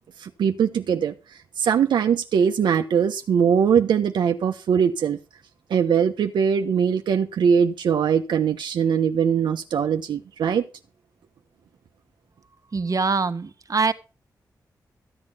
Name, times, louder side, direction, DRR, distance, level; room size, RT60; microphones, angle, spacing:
voice 1, 0.2-5.2 5.7-10.7, right 7 dB, 85° right, 1.1 m, -21 dB
voice 2, 12.7-13.9, right 4 dB, 50° right, 1.6 m, -23 dB
14.5 x 8.7 x 5.5 m
cardioid pair, 50°, 8 cm